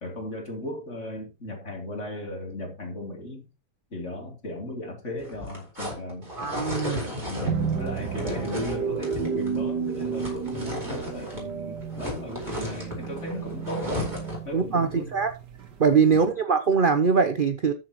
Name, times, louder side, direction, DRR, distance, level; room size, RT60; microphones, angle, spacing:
voice 1, 0.0-3.5 3.9-6.3 6.8-14.1 14.5-15.2 16.1-16.3, left 1 dB, 40° left, 3.7 m, -36 dB
sound 1, 5.2-11.5 11.8-14.5, left 1 dB, 25° right, 4.9 m, -35 dB
voice 2, 6.4-7.0 14.5-15.3 15.8-17.7, right 5 dB, 45° right, 0.7 m, -22 dB
sound 2, 7.5-16.2, right 6 dB, 80° right, 1.9 m, -32 dB
13.5 x 7.5 x 3.0 m
omnidirectional pair, 1.8 m